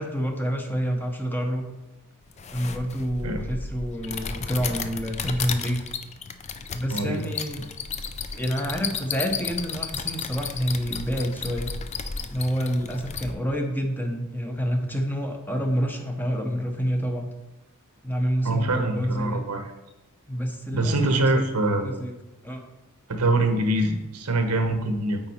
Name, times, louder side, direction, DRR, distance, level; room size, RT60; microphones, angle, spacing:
voice 1, 0.0-1.7 2.5-5.9 6.7-7.7 8.3-11.7 12.2-17.3 18.0-19.4 20.3-20.9 21.3-21.4 21.8-22.1 22.4-22.6, equal, 10° left, 3 dB, 0.7 m, -28 dB
sound 1, 2.3-13.3, left 5 dB, 30° left, 0.4 m, -34 dB
voice 2, 6.9-7.3 18.4-19.6 20.7-22.0 23.1-25.2, right 2 dB, 85° right, 6 dB, 0.9 m, -24 dB
8.8 x 3.9 x 4.3 m, 1.0 s
head